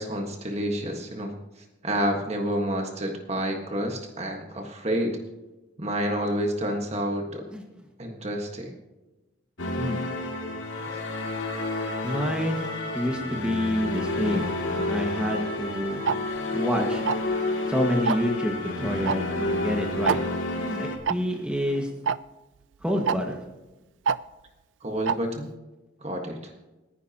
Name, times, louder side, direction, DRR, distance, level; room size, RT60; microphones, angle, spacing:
voice 1, 0.0-1.3 1.8-5.2 5.8-7.4 8.0-8.7 24.8-25.5 26.0-26.4, equal, 35° right, 2 dB, 1.5 m, -29 dB
sound 1, 9.6-21.0, left 2 dB, 85° left, 2.4 m, -30 dB
voice 2, 12.0-12.7 12.9-16.1 16.5-17.0 17.7-20.2 20.6-21.9 22.8-23.4, equal, 5° right, 1 dB, 1.7 m, -28 dB
Tick-tock, 16.1-16.2 17.1-17.3 18.1-18.3 19.1-19.2 19.4-19.5 20.1-20.2 21.1-21.2 22.1-22.2 23.1-23.2 24.1-24.2 25.1-25.2, right 6 dB, 70° right, 0.4 m, -24 dB
29.0 x 10.5 x 2.9 m, 1.1 s
head